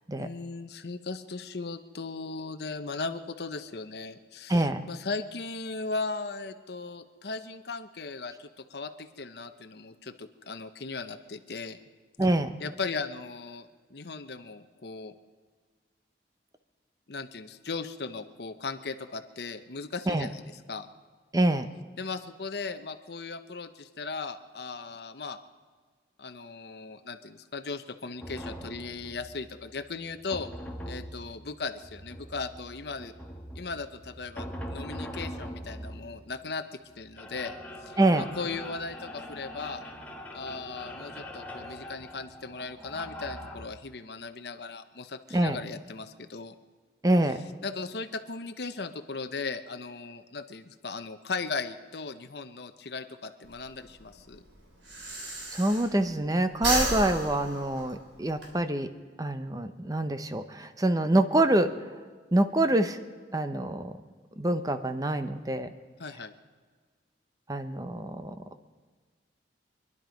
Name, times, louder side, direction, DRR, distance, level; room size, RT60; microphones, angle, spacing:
voice 1, 0.2-11.8 12.6-15.1 17.1-20.4 20.7-20.9 22.0-25.4 26.2-30.5 30.9-33.1 33.6-36.6 37.0-37.6 37.8-39.8 40.3-46.5 47.6-54.4 66.0-66.3, left 4 dB, 60° left, 8 dB, 0.8 m, -37 dB
voice 2, 4.5-4.8 12.2-12.6 20.1-20.3 21.3-21.7 38.0-38.2 45.3-45.6 47.0-47.4 55.5-58.9 59.2-61.7 62.3-63.0 63.3-63.9 64.4-65.7 67.5-68.3, right 1 dB, 20° right, 10 dB, 0.7 m, -26 dB
sound 1, 28.2-43.7, equal, 10° left, 1.3 m, -42 dB
Breathing, 53.4-56.2 56.5-58.5, right 1 dB, 90° right, 3.7 m, -32 dB
25.0 x 11.0 x 5.2 m, 1.5 s
head